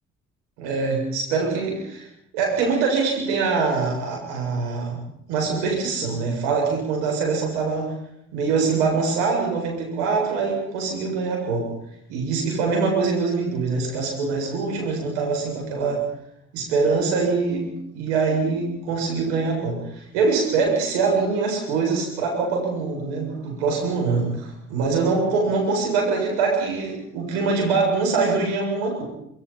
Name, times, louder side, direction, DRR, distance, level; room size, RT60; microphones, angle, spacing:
voice 1, 0.6-2.1 2.3-5.0 5.3-7.9 8.3-11.7 12.1-16.0 16.5-24.3 24.7-29.0, right 4 dB, 70° right, 0 dB, 7.5 m, -23 dB
25.5 x 22.0 x 5.8 m, 0.77 s
figure-of-eight pair, 45°, 34 cm